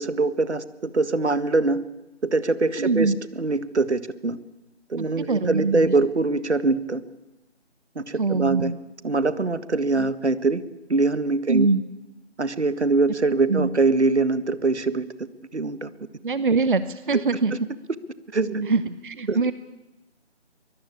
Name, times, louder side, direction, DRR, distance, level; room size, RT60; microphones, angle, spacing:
voice 1, 0.0-1.8 2.3-4.4 4.9-7.0 8.0-8.7 9.0-10.6 10.9-11.7 12.4-15.0 15.5-15.9 18.3-18.7 19.3-19.4, right 3 dB, 70° right, 13 dB, 1.8 m, -23 dB
voice 2, 2.8-3.2 5.0-6.0 8.2-8.8 10.0-10.1 11.5-11.8 13.5-13.7 16.2-17.5 18.7-19.5, right 4 dB, 45° right, 14 dB, 0.9 m, -23 dB
23.5 x 22.0 x 8.6 m, 1.0 s
figure-of-eight pair, 160°, 35 cm